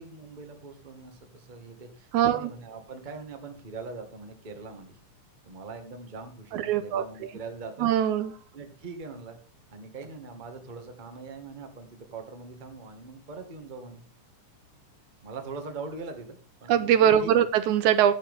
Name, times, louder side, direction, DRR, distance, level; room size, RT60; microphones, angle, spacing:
voice 1, 0.0-5.0 5.4-7.9 8.5-9.4 9.7-14.0 15.2-17.4, right 4 dB, 20° right, 5 dB, 1.3 m, -42 dB
voice 2, 2.1-2.5 6.5-7.3 7.8-8.3 16.7-18.1, right 9 dB, 80° right, 12 dB, 2.2 m, -22 dB
11.5 x 8.7 x 5.5 m, 0.38 s
omnidirectional pair, 3.5 m